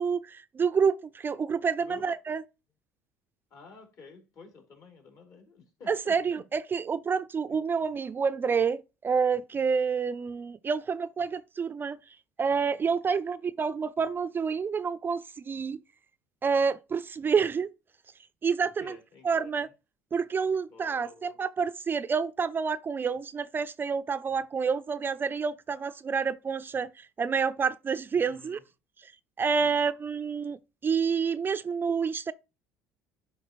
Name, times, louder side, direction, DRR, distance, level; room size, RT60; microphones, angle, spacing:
voice 1, 0.0-2.4 5.9-12.0 12.4-15.8 16.4-17.7 18.4-18.9 19.2-19.7 20.1-28.6 29.0-29.1 29.4-32.3, right 5 dB, 30° right, 0.4 m, -28 dB
voice 2, 3.5-6.4 13.1-13.2 18.8-19.7 20.7-21.4 28.3-28.6 29.6-29.8, left 4 dB, 55° left, 2.9 m, -51 dB
11.0 x 4.0 x 3.0 m
hypercardioid pair, 75°, 7 cm